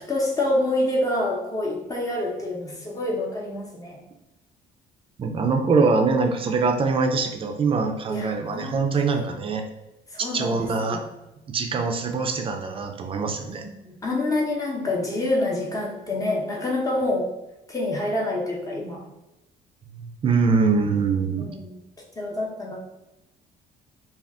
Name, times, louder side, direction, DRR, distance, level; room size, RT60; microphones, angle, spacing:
voice 1, 0.0-4.0 8.1-9.3 10.1-11.0 13.5-17.3 17.7-19.0 21.4-21.8 22.2-22.8, left 1 dB, 20° left, -2 dB, 0.8 m, -27 dB
voice 2, 5.2-9.7 10.3-11.0 11.5-13.6 19.9-21.5, right 4 dB, 35° right, 5 dB, 0.4 m, -23 dB
2.4 x 2.3 x 3.4 m, 0.95 s
cardioid pair, 110°, 17 cm